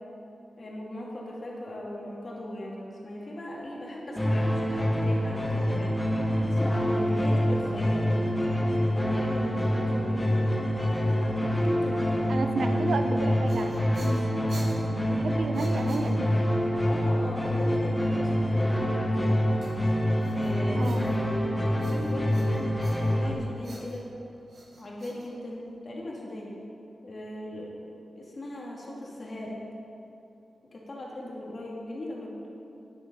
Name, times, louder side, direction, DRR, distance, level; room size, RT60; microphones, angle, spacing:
voice 1, 0.6-8.1 8.9-10.3 10.7-12.5 16.8-19.5 20.3-21.4 21.9-22.4 23.0-24.1 24.8-26.6 27.0-27.8 28.1-29.6 30.7-32.3, left 1 dB, 40° left, -3 dB, 2.4 m, -38 dB
sound 1, 4.2-23.3, equal, 10° left, 1.3 m, -26 dB
voice 2, 12.3-14.6 14.9-16.4 20.7-21.1, right 3 dB, 75° right, 6 dB, 0.8 m, -33 dB
sound 2, 13.2-16.6 19.6-21.4 21.8-23.3 23.6-25.9, right 2 dB, 55° right, 1.9 m, -49 dB
10.5 x 9.7 x 5.5 m, 2.7 s
wide cardioid pair, 135°, 0 cm